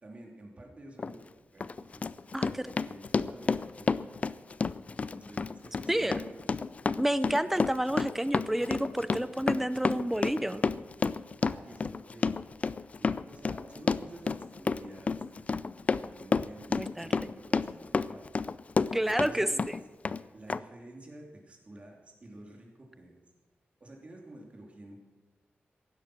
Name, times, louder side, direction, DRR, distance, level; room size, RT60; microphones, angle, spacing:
voice 1, 0.0-2.1 2.4-4.4 4.9-6.7 11.4-12.4 13.0-18.2 19.1-19.7 20.3-23.2 23.8-25.0, right 1 dB, 30° right, 0 dB, 2.9 m, -50 dB
Run, 1.0-1.1 1.6-19.3 19.6-20.2 20.5-20.6, left 4 dB, 35° left, 0.4 m, -30 dB
voice 2, 5.9-6.2 7.0-10.6 16.7-17.1 18.9-19.8, right 1 dB, 5° right, 14 dB, 0.6 m, -29 dB
16.0 x 11.5 x 6.2 m, 1.2 s
wide cardioid pair, 165°, 4 cm